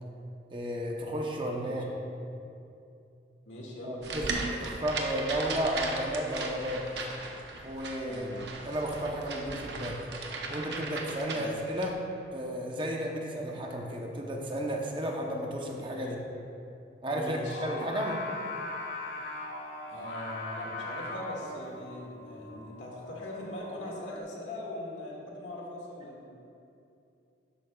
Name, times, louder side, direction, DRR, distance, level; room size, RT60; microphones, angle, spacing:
voice 1, 0.5-1.9 3.8-7.1 7.6-10.1 10.5-12.0 12.3-16.2 17.0-18.2, equal, 25° right, 0 dB, 0.8 m, -33 dB
voice 2, 3.5-4.5 8.1-8.4 11.3-11.5 15.9-16.1 17.1-17.6 19.8-26.3, left 1 dB, 90° left, -3 dB, 2.0 m, -41 dB
sound 1, 4.0-11.9, right 3 dB, 70° right, 0.9 m, -37 dB
Singing, 17.5-24.2, left 2 dB, 70° left, 1.2 m, -40 dB
12.0 x 8.7 x 2.3 m, 2.6 s
head